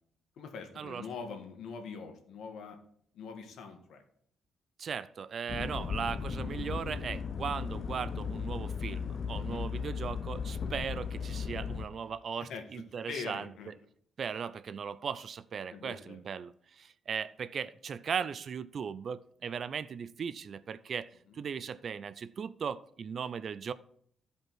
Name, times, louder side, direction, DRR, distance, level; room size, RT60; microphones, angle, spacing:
voice 1, 0.4-2.8 3.1-4.0 9.4-9.7 12.4-13.7 15.7-16.2, left 5 dB, 75° left, 4 dB, 1.7 m, -43 dB
voice 2, 4.8-13.7 14.2-23.7, right 6 dB, 45° right, 16 dB, 0.4 m, -38 dB
sound 1, 5.5-11.8, left 6 dB, 45° left, 0.6 m, -36 dB
14.0 x 5.1 x 4.6 m, 0.63 s
cardioid pair, 160°, 0 cm